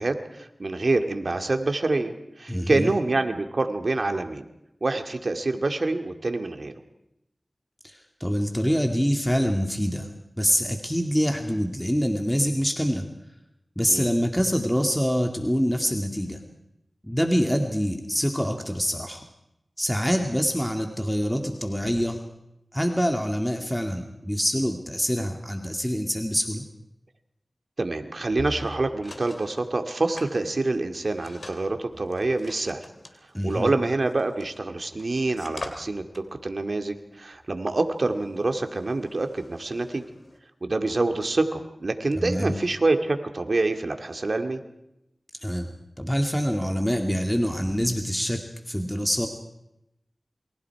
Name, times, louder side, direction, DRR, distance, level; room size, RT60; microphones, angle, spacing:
voice 1, 0.0-4.5 4.8-6.7 13.9-14.1 27.8-32.8 33.4-40.0 40.6-44.6, right 2 dB, 70° right, 6 dB, 2.3 m, -26 dB
voice 2, 2.5-2.9 7.8-10.1 10.4-13.1 13.8-16.4 17.0-19.2 19.8-22.2 22.7-26.6 33.3-33.7 42.2-42.6 45.4-45.7 46.0-48.4 48.7-49.3, equal, 5° left, 3 dB, 2.3 m, -25 dB
sound 1, 28.3-29.7 30.1-34.6 34.9-40.4, left 2 dB, 55° left, 3.1 m, -44 dB
28.0 x 23.5 x 4.8 m, 0.85 s
wide cardioid pair, 45°, 0 cm